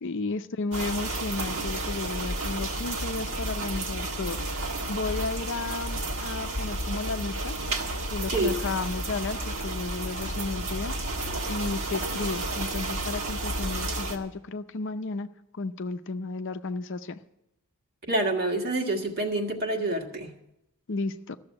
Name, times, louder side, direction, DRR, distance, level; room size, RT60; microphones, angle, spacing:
voice 1, 0.0-7.6 8.1-10.9 11.5-15.3 15.5-17.2 20.9-21.4, left 3 dB, 55° left, 10 dB, 0.6 m, -33 dB
sound 1, 0.7-14.2, right 2 dB, 60° right, 1.6 m, -31 dB
voice 2, 18.1-20.3, right 2 dB, 45° right, 2 dB, 1.7 m, -27 dB
13.5 x 7.1 x 9.7 m, 0.86 s
head